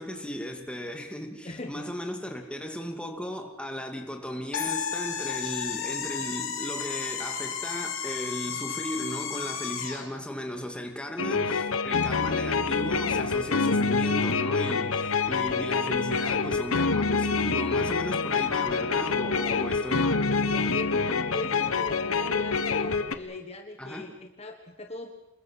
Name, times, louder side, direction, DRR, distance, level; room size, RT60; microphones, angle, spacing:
voice 1, 0.0-20.3 23.8-24.1, equal, 5° left, 3 dB, 2.4 m, -36 dB
voice 2, 1.4-1.9 19.4-19.7 20.5-25.1, left 2 dB, 30° left, 4 dB, 1.3 m, -39 dB
sound 1, 4.5-10.1, left 7 dB, 70° left, 3.5 m, -33 dB
sound 2, 11.2-23.1, left 4 dB, 90° left, 1.3 m, -26 dB
27.0 x 21.5 x 6.4 m, 0.96 s
head